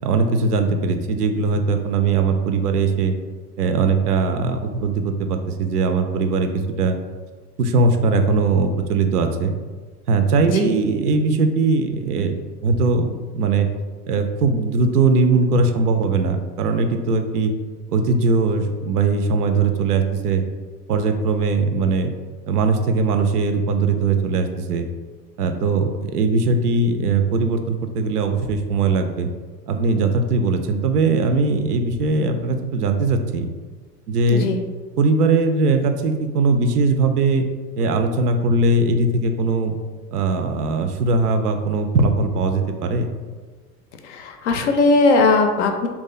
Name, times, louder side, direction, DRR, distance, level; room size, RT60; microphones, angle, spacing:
voice 1, 0.0-3.2 3.6-7.0 7.6-9.5 10.1-13.7 14.1-17.5 17.9-20.4 20.9-22.1 22.5-24.9 25.4-29.3 29.7-33.5 34.1-34.5 35.0-37.4 37.8-39.7 40.1-43.1, right 3 dB, 70° right, 7 dB, 0.5 m, -20 dB
voice 2, 10.4-10.7 34.3-34.6 44.0-45.9, left 3 dB, 50° left, 5 dB, 0.5 m, -19 dB
2.7 x 2.4 x 3.8 m, 1.4 s
figure-of-eight pair, 85°, 48 cm